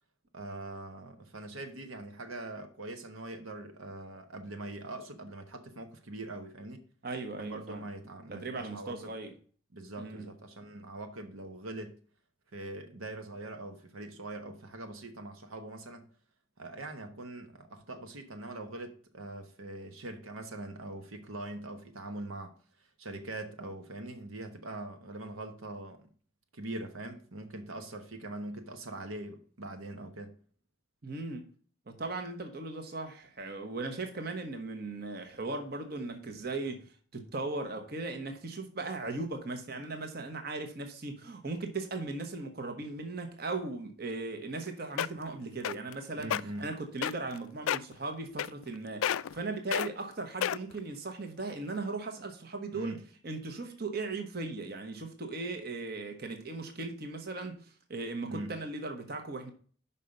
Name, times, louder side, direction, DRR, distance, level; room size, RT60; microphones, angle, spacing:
voice 1, 0.3-6.8 7.4-9.1 9.7-11.9 12.5-16.1 16.6-22.5 23.0-26.1 26.5-30.3 46.2-46.7 52.7-53.0 58.3-58.5, right 2 dB, 90° right, 1.2 m, -42 dB
voice 2, 7.0-7.8 8.3-9.3 10.0-10.3 31.0-31.5 31.9-46.3 46.6-59.5, right 3 dB, 50° right, 1.1 m, -38 dB
sound 1, 44.5-44.6 45.0-45.3 45.6-45.9 46.2-46.4 47.0-47.4 47.7-47.9 48.4-48.7 49.0-49.4 49.7-49.9 50.4-50.8 51.4-51.5, left 10 dB, 85° left, 0.3 m, -30 dB
5.6 x 5.5 x 6.4 m
head